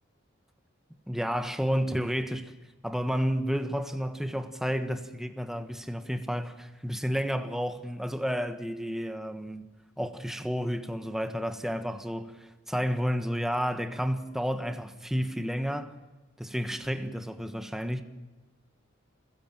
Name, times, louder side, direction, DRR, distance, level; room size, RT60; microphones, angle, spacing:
voice 1, 1.1-2.5 2.8-9.7 10.0-16.0 16.4-18.0, equal, ahead, 1.4 m, -31 dB
28.0 x 16.5 x 7.6 m
head